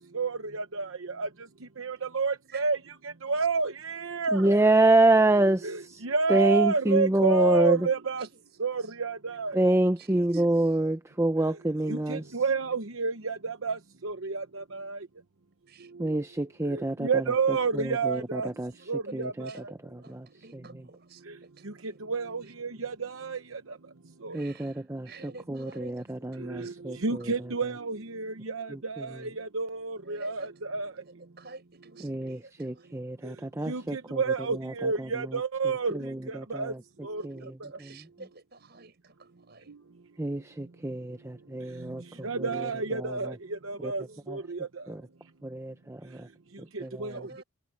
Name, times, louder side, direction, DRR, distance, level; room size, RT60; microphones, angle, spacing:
voice 1, 0.1-0.9 1.2-1.3 1.8-2.8 3.2-4.4 5.6-8.2 8.6-9.5 11.9-13.8 14.0-15.0 16.7-18.5 18.9-19.5 22.1-23.4 26.5-26.7 27.0-29.1 29.4-30.5 30.7-30.9 33.7-35.9 36.5-36.7 37.0-37.2 42.2-43.3 43.7-44.0 44.3-44.6 47.0-47.1, right 4 dB, 75° right, 1.0 m, -29 dB
voice 2, 4.3-6.0 6.3-7.9 9.5-12.2 16.0-18.7 19.1-19.5 19.8-20.3 20.5-20.8 24.3-27.3 28.7-29.2 32.0-34.2 34.5-35.4 35.9-36.8 37.2-38.1 40.2-43.3 43.8-43.9 44.3-44.4 44.9-45.0 45.4-46.3 46.6-47.3, right 1 dB, 10° right, 0.5 m, -27 dB
voice 3, 10.1-10.5 15.7-15.9 19.1-19.2 19.5-19.6 20.0-21.8 24.3-26.1 26.5-26.8 27.2-27.3 30.0-30.9 31.4-33.0 35.9-36.0 37.2-37.5 37.8-39.8 41.9-42.4 43.7-44.2 46.8-47.4, right 3 dB, 50° right, 7.2 m, -50 dB
head